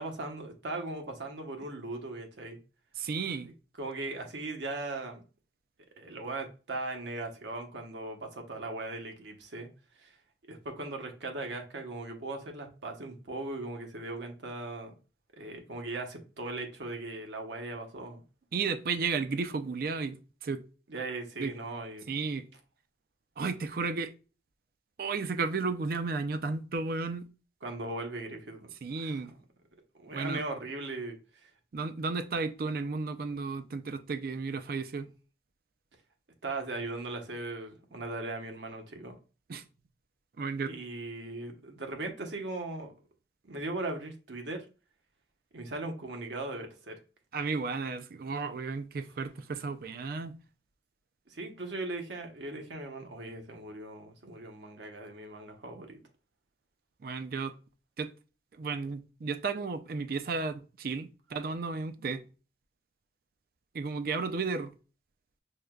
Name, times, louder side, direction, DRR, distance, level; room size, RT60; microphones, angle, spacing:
voice 1, 0.0-2.6 3.8-5.2 6.0-9.7 10.0-10.2 10.5-14.9 15.3-18.2 20.9-22.1 27.6-29.4 30.0-31.5 36.4-39.2 40.6-42.9 43.4-44.6 45.5-47.0 51.3-56.0, right 2 dB, 80° right, 0.9 m, -39 dB
voice 2, 3.0-3.5 18.5-20.6 21.4-21.5 22.1-22.4 23.4-24.1 25.0-27.3 28.8-29.3 30.1-30.4 31.7-35.1 39.5-39.6 40.4-40.7 47.3-50.4 57.0-57.6 58.0-58.1 58.6-62.2 63.7-64.7, right 4 dB, 55° right, 0.4 m, -33 dB
6.3 x 2.2 x 2.3 m
head